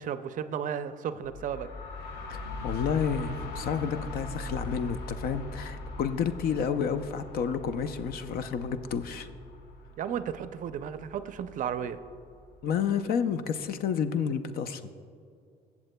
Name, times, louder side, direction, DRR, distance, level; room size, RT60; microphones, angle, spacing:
voice 1, 0.0-1.7 10.0-12.0, right 8 dB, 50° right, 11 dB, 0.5 m, -34 dB
sound 1, 1.2-12.9, left 2 dB, 90° left, 0.8 m, -41 dB
voice 2, 2.3-9.3 12.6-14.8, left 7 dB, 65° left, 11 dB, 0.5 m, -30 dB
16.0 x 7.2 x 2.2 m, 2.3 s
cardioid pair, 110°, 17 cm